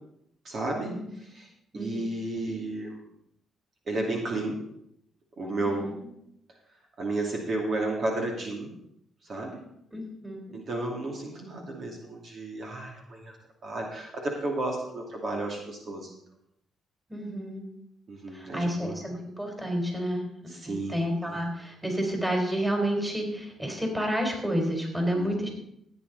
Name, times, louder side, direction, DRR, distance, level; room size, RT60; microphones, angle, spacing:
voice 1, 0.4-0.9 1.3-3.0 3.9-4.6 5.4-5.9 7.0-8.7 9.2-9.6 10.5-13.4 13.6-16.1 18.1-19.0 20.5-21.4 25.1-25.5, right 2 dB, 50° right, 0 dB, 2.6 m, -33 dB
voice 2, 1.7-2.0 5.6-5.9 9.9-10.6 17.1-17.6 18.3-20.3 20.6-25.5, equal, 10° right, 2 dB, 4.0 m, -30 dB
15.5 x 9.2 x 4.1 m, 0.74 s
cardioid pair, 90°, 0 cm